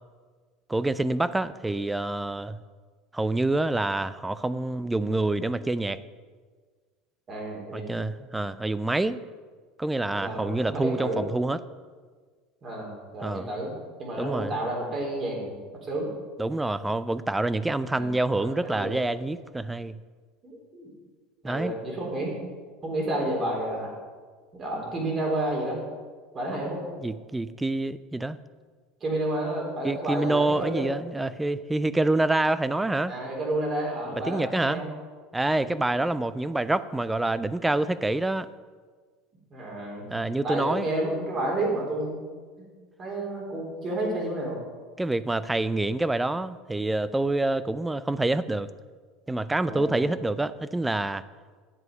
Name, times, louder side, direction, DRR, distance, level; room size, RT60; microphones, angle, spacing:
voice 1, 0.7-2.6 3.1-6.0 7.7-9.2 9.8-11.6 13.2-13.5 14.2-14.5 16.4-20.0 21.4-21.7 27.0-28.4 29.8-33.2 34.3-34.8 35.3-38.5 40.1-40.9 45.0-48.7 49.3-51.2, right 2 dB, 10° right, 16 dB, 0.4 m, -27 dB
voice 2, 7.3-8.0 10.1-11.2 12.6-15.6 15.8-16.1 17.9-18.9 20.4-20.9 21.4-22.4 22.8-23.9 24.5-25.8 26.3-26.8 29.0-30.9 33.1-34.9 35.6-35.8 39.5-42.2 42.6-42.7 43.0-44.6 49.6-50.1, right 1 dB, 35° right, -1 dB, 3.8 m, -31 dB
9.9 x 8.0 x 5.4 m, 1.5 s
supercardioid pair, 105°, 0 cm